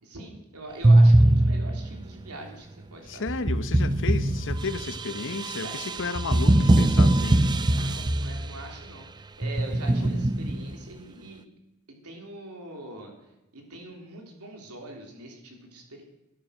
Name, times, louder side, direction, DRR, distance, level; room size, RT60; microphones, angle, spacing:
voice 1, 0.0-3.4 5.6-6.0 6.3-6.5 7.7-11.4 12.0-13.1 13.5-16.0, right 2 dB, 85° right, 2 dB, 3.3 m, -43 dB
sound 1, 0.8-2.0 3.3-8.6 9.4-10.7, right 1 dB, 20° right, 0.5 m, -22 dB
voice 2, 3.1-7.4 10.0-10.3, left 4 dB, 60° left, 12 dB, 0.9 m, -33 dB
12.0 x 11.5 x 6.3 m, 0.96 s
head